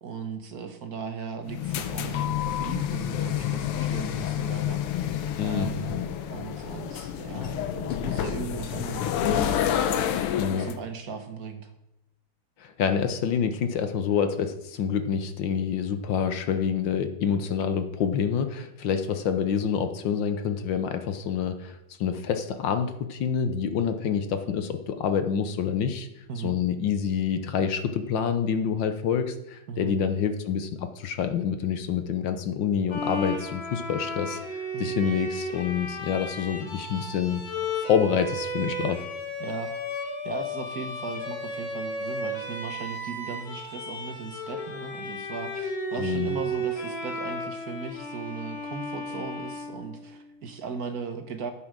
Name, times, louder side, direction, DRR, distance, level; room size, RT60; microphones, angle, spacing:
voice 1, 0.0-5.1 5.4-10.3 10.6-11.7 26.3-26.6 29.7-30.0 34.7-35.0 39.4-39.7 40.2-51.5, right 5 dB, 50° right, 7 dB, 1.3 m, -37 dB
sound 1, 1.5-10.8, left 10 dB, 85° left, 1.7 m, -29 dB
voice 2, 5.4-5.7 10.4-10.7 12.6-26.1 26.4-34.4 34.8-37.4 37.8-39.0 46.0-46.4, left 7 dB, 65° left, 9 dB, 1.4 m, -27 dB
Bowed string instrument, 32.9-50.3, equal, 45° left, 2.3 m, -34 dB
9.9 x 7.7 x 6.1 m, 0.86 s
omnidirectional pair, 2.4 m